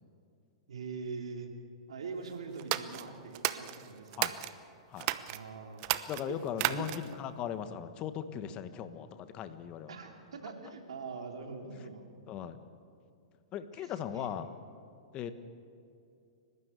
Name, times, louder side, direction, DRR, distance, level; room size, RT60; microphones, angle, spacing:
voice 1, 0.7-1.5 1.9-4.3 5.3-5.9 6.3-6.4 6.6-6.9 9.9-12.1 13.8-13.9 14.1-14.3, right 4 dB, 85° right, 3 dB, 3.1 m, -42 dB
sound 1, 2.6-4.5 5.0-5.4 5.8-7.2, right 17 dB, 45° right, 0.9 m, -33 dB
voice 2, 6.1-9.9 12.3-12.6 13.5-14.5 15.1-15.3, left 9 dB, 35° left, 10 dB, 1.4 m, -38 dB
30.0 x 12.5 x 8.3 m, 2.5 s
hypercardioid pair, 125°, 3 cm